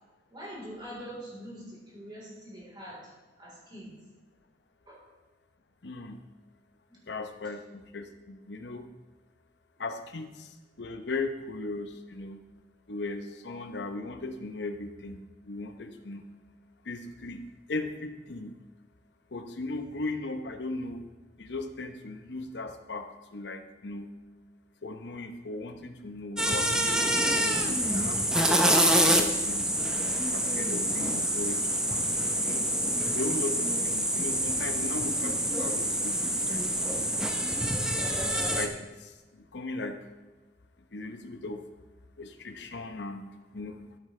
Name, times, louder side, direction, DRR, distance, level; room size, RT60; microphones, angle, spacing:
voice 1, 0.3-3.1 3.4-3.9 4.9-5.1 6.9-7.0, equal, 25° right, -5 dB, 3.7 m, -44 dB
voice 2, 5.8-6.2 7.1-8.9 9.8-12.4 12.9-16.2 16.8-17.4 17.7-18.5 19.3-21.0 21.4-24.1 24.8-29.7 30.3-32.7 33.1-36.2 36.4-36.6 37.8-40.0 40.9-41.6 42.2-43.3 43.5-43.8, left 3 dB, 70° left, 7 dB, 0.8 m, -38 dB
sound 1, 26.4-38.7, right 1 dB, 5° right, 0.7 m, -26 dB
13.5 x 8.5 x 3.3 m, 1.2 s
head